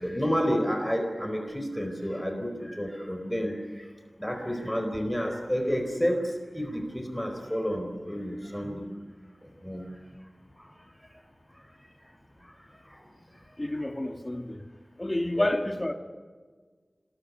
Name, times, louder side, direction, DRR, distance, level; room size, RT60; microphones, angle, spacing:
voice 1, 0.0-8.9 9.4-9.9 10.5-10.7 11.0-11.2 11.5-11.7 12.0-12.1 12.4-13.1 15.3-15.5, equal, 5° left, 4 dB, 4.5 m, -31 dB
voice 2, 13.6-14.6 15.0-15.9, left 1 dB, 25° left, 5 dB, 2.8 m, -29 dB
26.5 x 20.5 x 9.8 m, 1.5 s
wide cardioid pair, 65°, 0 cm